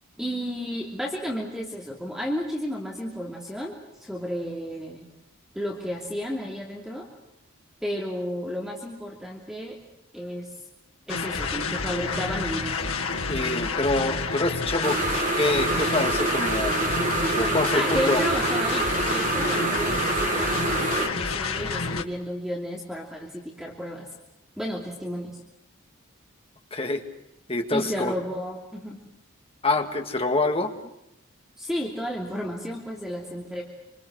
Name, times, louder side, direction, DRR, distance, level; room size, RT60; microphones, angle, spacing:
voice 1, 0.2-3.7 4.0-5.1 5.5-7.1 7.8-9.8 10.1-10.5 11.1-13.0 17.7-24.1 24.6-25.4 27.7-29.0 31.6-33.6, equal, ahead, -1 dB, 2.9 m, -32 dB
sound 1, 11.1-22.0, left 4 dB, 85° left, 2.0 m, -29 dB
voice 2, 13.3-15.0 15.3-16.8 17.4-18.2 26.7-27.0 27.5-28.1 29.6-30.7, left 2 dB, 25° left, 5 dB, 1.9 m, -26 dB
sound 2, 14.8-21.1, right 3 dB, 35° right, 2.1 m, -26 dB
26.5 x 26.5 x 6.4 m, 0.86 s
head